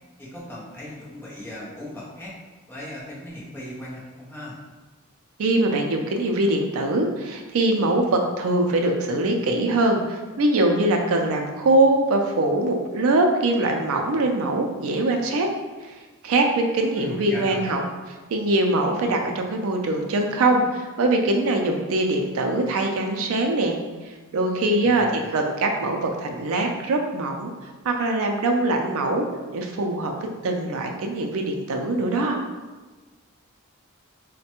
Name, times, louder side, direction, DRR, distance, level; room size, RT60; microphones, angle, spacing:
voice 1, 0.2-2.3 2.7-4.6 16.9-17.7 24.8-25.4, left 1 dB, 10° left, -6 dB, 0.7 m, -37 dB
voice 2, 5.4-15.5 15.8-16.0 16.2-17.8 18.3-23.8 24.1-25.1 25.3-27.5 27.8-29.3 29.5-30.1 30.4-32.4, right 2 dB, 65° right, 3 dB, 0.4 m, -22 dB
3.2 x 2.1 x 2.9 m, 1.3 s
head